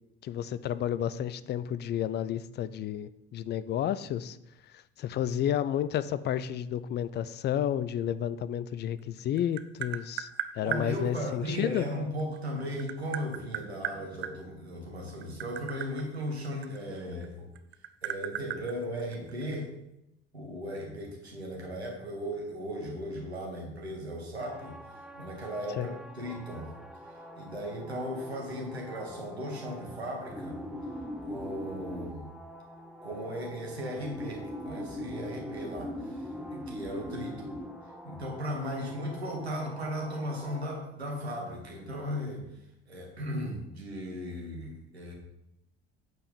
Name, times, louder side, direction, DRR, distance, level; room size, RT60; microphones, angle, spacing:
voice 1, 0.2-4.4 4.7-10.3 10.5-11.9 25.8-25.9, left 10 dB, 35° left, 15 dB, 0.4 m, -31 dB
Tap, 9.0-10.9 12.2-14.3 15.1-17.2 17.5-19.5, right 11 dB, 40° right, 0.6 m, -36 dB
voice 2, 10.6-17.5 18.0-19.7 20.3-24.8 25.2-26.7 27.4-30.6 31.2-32.3 33.0-37.6 38.0-42.4 42.9-45.1, equal, 85° right, 0 dB, 1.6 m, -36 dB
sound 1, 24.4-40.7, equal, ahead, 0.7 m, -42 dB
8.3 x 4.6 x 5.2 m, 0.85 s
figure-of-eight pair, 60°, 31 cm